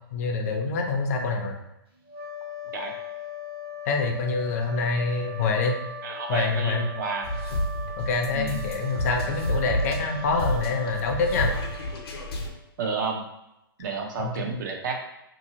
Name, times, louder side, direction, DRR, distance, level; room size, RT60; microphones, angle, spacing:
voice 1, 0.1-1.6 3.9-5.8 6.3-6.9 8.0-11.5 14.2-14.5, left 4 dB, 40° left, 3 dB, 0.4 m, -26 dB
sound 1, 2.1-12.7, left 2 dB, 85° right, 1.2 m, -39 dB
voice 2, 6.0-7.2 8.3-8.6 12.8-13.2 13.8-14.9, right 4 dB, 50° right, 1 dB, 0.6 m, -30 dB
sound 2, 7.2-12.5, left 1 dB, 80° left, 0.6 m, -30 dB
2.7 x 2.7 x 2.7 m, 0.86 s
hypercardioid pair, 150°, 13 cm